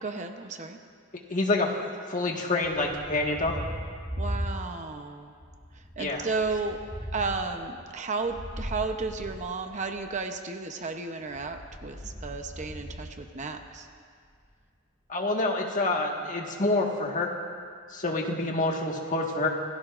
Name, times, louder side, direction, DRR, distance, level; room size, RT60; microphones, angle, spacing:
voice 1, 0.0-0.8 4.2-5.3 6.0-6.8 7.1-13.9, right 4 dB, 35° right, 5 dB, 0.8 m, -33 dB
voice 2, 1.3-1.7 2.1-3.5 6.0-6.2 15.1-17.3 17.9-19.5, left 2 dB, 35° left, 0 dB, 1.6 m, -27 dB
Thunder, 2.6-5.0 5.3-10.2 11.2-13.9, equal, 10° right, 2.1 m, -39 dB
27.0 x 17.5 x 2.5 m, 2.1 s
head